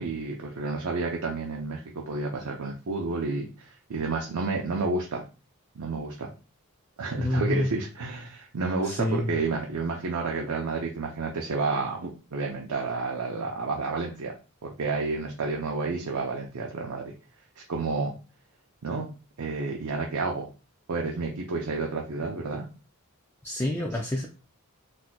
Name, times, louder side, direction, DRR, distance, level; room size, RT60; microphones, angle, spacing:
voice 1, 0.0-5.2 5.7-6.3 7.0-17.1 17.6-18.1 18.8-20.5 20.9-22.7 23.9-24.0, right 3 dB, 80° right, 0 dB, 0.6 m, -30 dB
voice 2, 7.2-7.7 8.8-9.3 23.4-24.3, left 1 dB, 10° left, -1 dB, 0.3 m, -27 dB
4.2 x 2.5 x 2.2 m, 0.33 s
head